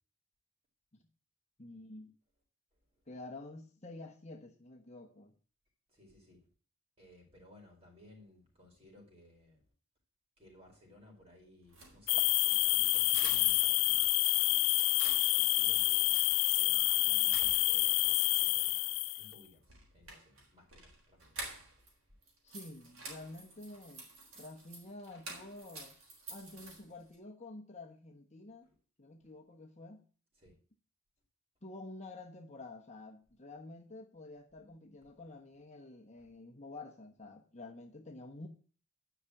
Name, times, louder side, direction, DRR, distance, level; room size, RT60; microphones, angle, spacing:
voice 1, 1.6-2.1 3.1-5.3 22.4-24.1 24.4-25.9 26.3-28.7 29.0-30.0 31.6-38.5, left 2 dB, 30° left, 1.2 m, -49 dB
voice 2, 5.9-6.5 7.0-9.6 10.4-14.6 15.3-21.9 22.5-22.6 28.6-28.7 29.2-29.3 30.4-30.6 36.2-36.3, left 1 dB, 25° right, 4.7 m, -60 dB
sound 1, 11.6-13.7 14.0-16.4 16.8-16.9 17.2-18.0 19.6-21.9 22.2-27.1, right 2 dB, 65° right, 4.2 m, -49 dB
sound 2, 12.1-19.3, left 19 dB, 60° left, 0.4 m, -28 dB
10.5 x 6.0 x 8.2 m
head